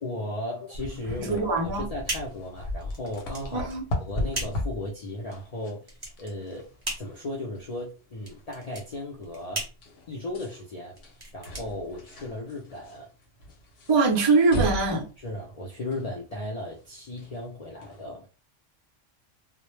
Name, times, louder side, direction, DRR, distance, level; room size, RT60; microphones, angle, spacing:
voice 1, 0.0-3.7 4.0-5.9 6.2-6.7 7.0-9.7 10.1-11.0 11.3-13.1 15.2-18.3, left 1 dB, 90° left, 0.3 m, -36 dB
sound 1, 0.7-18.1, equal, 65° left, 0.8 m, -38 dB
sound 2, 1.2-12.5, right 1 dB, 25° right, 0.7 m, -39 dB
voice 2, 1.3-1.9 3.5-3.8 13.9-15.1, right 3 dB, 50° right, 0.3 m, -22 dB
2.0 x 2.0 x 3.0 m
omnidirectional pair, 1.3 m